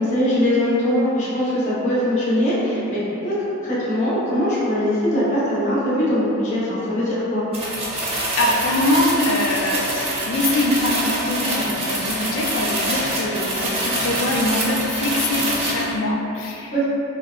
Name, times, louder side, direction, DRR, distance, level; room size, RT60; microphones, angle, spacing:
voice 1, 0.0-7.4 16.7-16.8, equal, 35° left, -10 dB, 0.7 m, -21 dB
sound 1, 7.5-15.9, right 1 dB, 30° right, 0.4 m, -25 dB
voice 2, 8.4-16.7, left 1 dB, 65° left, 0 dB, 0.3 m, -23 dB
2.7 x 2.1 x 2.2 m, 2.7 s
head